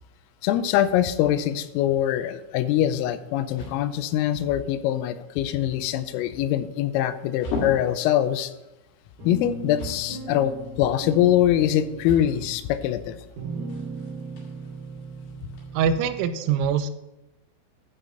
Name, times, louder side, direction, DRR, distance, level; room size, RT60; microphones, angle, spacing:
voice 1, 0.4-8.5 9.2-13.2, left 11 dB, 90° left, 12 dB, 3.3 m, -23 dB
sound 1, 2.2-15.6, left 2 dB, 70° left, 4.5 m, -41 dB
sound 2, 9.2-16.3, right 3 dB, 45° right, 2.5 m, -37 dB
voice 2, 15.7-16.9, right 7 dB, 85° right, 10 dB, 3.1 m, -23 dB
11.5 x 3.9 x 7.8 m, 0.94 s
omnidirectional pair, 5.8 m